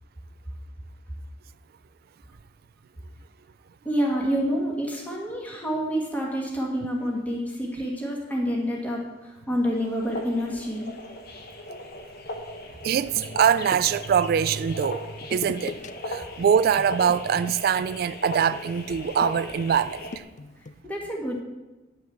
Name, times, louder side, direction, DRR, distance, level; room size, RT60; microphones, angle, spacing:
voice 1, 3.8-10.9 20.8-21.4, equal, 10° left, 1.5 m, -28 dB
sound 1, 9.7-20.2, left 1 dB, 55° left, 1.0 m, -38 dB
sound 2, 12.8-14.2 15.2-15.9 16.2-16.4 16.8-20.8, left 3 dB, 40° left, 0.4 m, -41 dB
voice 2, 12.8-15.0 15.3-15.8 16.1-20.2, right 8 dB, 55° right, 0.3 m, -23 dB
9.4 x 6.2 x 7.3 m
head